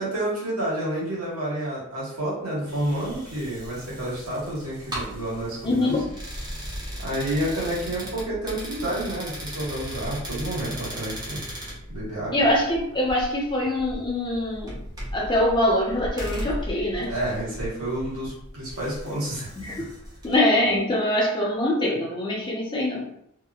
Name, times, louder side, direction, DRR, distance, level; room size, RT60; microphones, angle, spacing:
voice 1, 0.0-6.0 7.0-11.4 11.9-12.5 17.0-19.5, right 1 dB, 80° right, -7 dB, 1.4 m, -29 dB
sound 1, 2.7-20.4, equal, 20° right, 0.7 m, -37 dB
voice 2, 5.6-6.0 12.3-14.8 15.1-17.1 19.5-19.9 20.2-23.1, left 1 dB, 20° left, -3 dB, 0.7 m, -23 dB
2.7 x 2.5 x 2.3 m, 0.72 s
head